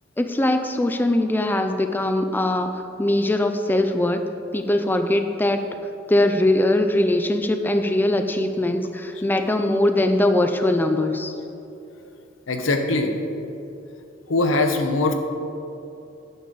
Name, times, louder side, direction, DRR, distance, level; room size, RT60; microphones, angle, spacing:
voice 1, 0.2-4.2 4.5-5.7 6.1-11.4, left 1 dB, 10° left, 7 dB, 0.3 m, -21 dB
voice 2, 12.5-13.1 14.3-15.1, left 2 dB, 80° left, 5 dB, 0.8 m, -21 dB
9.7 x 3.8 x 6.9 m, 2.7 s
head